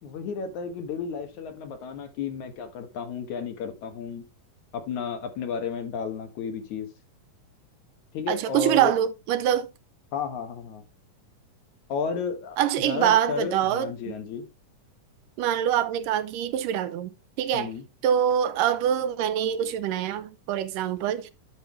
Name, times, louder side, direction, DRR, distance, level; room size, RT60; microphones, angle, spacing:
voice 1, 0.0-4.3 4.7-6.9 8.1-8.9 10.1-10.8 11.9-12.6 12.8-14.5 17.5-17.8, left 5 dB, 65° left, 2.7 m, -32 dB
voice 2, 8.3-9.7 12.6-14.1 15.4-17.1 17.4-17.7 18.0-21.3, right 10 dB, 85° right, 2.4 m, -24 dB
11.5 x 5.6 x 3.1 m
omnidirectional pair, 3.7 m